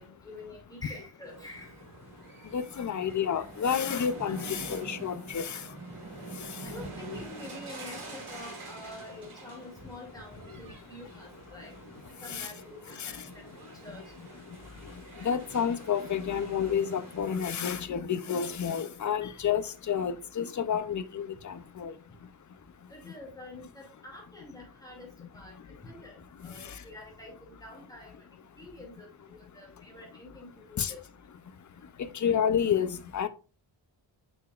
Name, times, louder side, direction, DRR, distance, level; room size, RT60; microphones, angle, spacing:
voice 1, 0.0-1.8 6.6-11.8 12.2-12.8 13.1-13.5 13.8-14.1 22.9-25.6 25.8-28.2 28.6-31.0, left 2 dB, 5° left, 2.3 m, -47 dB
sound 1, 1.2-17.8, right 3 dB, 85° right, 2.7 m, -46 dB
voice 2, 2.5-5.6 12.3-12.5 13.0-13.1 15.2-21.9 30.8-30.9 32.0-33.3, left 8 dB, 40° left, 0.5 m, -30 dB
6.8 x 6.2 x 2.4 m
wide cardioid pair, 180°, 48 cm